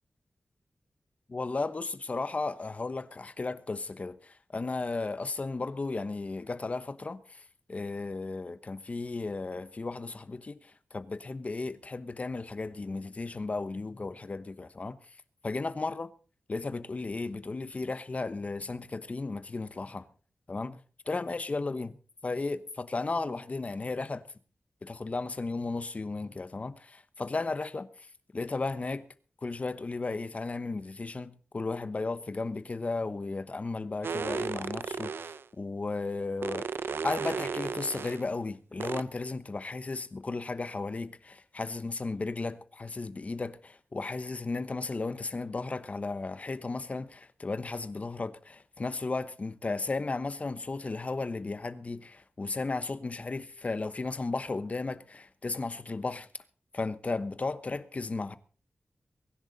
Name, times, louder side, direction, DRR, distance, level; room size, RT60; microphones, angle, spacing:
voice 1, 1.3-7.4 7.7-15.0 15.4-16.1 16.5-20.1 20.5-20.8 21.1-22.0 22.2-24.3 24.8-28.1 28.3-29.0 29.4-36.7 37.0-56.3 56.7-58.4, left 3 dB, 40° left, 1.0 m, -35 dB
sound 1, 34.0-35.4 36.4-38.2 38.8-39.0, right 5 dB, 80° right, 0.6 m, -34 dB
23.5 x 10.5 x 4.1 m
wide cardioid pair, 110°, 4 cm